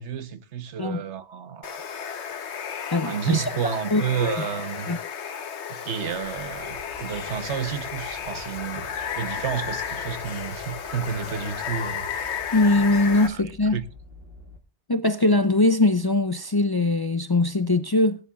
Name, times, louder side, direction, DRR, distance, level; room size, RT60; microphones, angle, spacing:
voice 1, 0.0-1.8 3.0-5.0 5.7-8.9 9.1-12.1 13.1-13.4 13.7-13.8, right 8 dB, 85° right, 1.2 m, -31 dB
Water, 1.6-13.3, left 7 dB, 80° left, 1.2 m, -33 dB
voice 2, 2.9-3.4 3.9-4.4 4.9-5.0 12.5-13.8 14.9-18.2, left 2 dB, 30° left, 0.5 m, -21 dB
sound 1, 6.0-14.6, equal, 60° right, 2.1 m, -47 dB
18.0 x 10.0 x 2.3 m
omnidirectional pair, 1.1 m